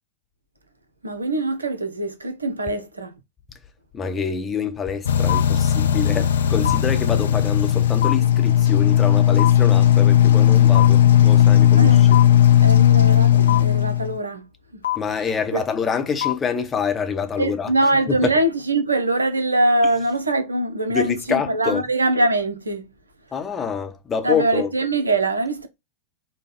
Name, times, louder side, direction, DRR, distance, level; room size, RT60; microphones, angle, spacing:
voice 1, 1.0-3.1 11.8-12.0 12.6-14.5 14.7-14.8 15.1-15.3 15.5-15.6 17.4-22.9 24.2-25.7, right 2 dB, 80° right, 0.8 m, -23 dB
voice 2, 3.9-11.9 15.0-17.7 18.1-18.3 20.9-21.8 23.3-24.7, left 6 dB, 20° left, 0.8 m, -26 dB
sound 1, 5.1-14.2 14.8-15.0 16.2-16.3, left 11 dB, 65° left, 0.5 m, -16 dB
4.9 x 2.3 x 3.7 m
figure-of-eight pair, 90°, 0 cm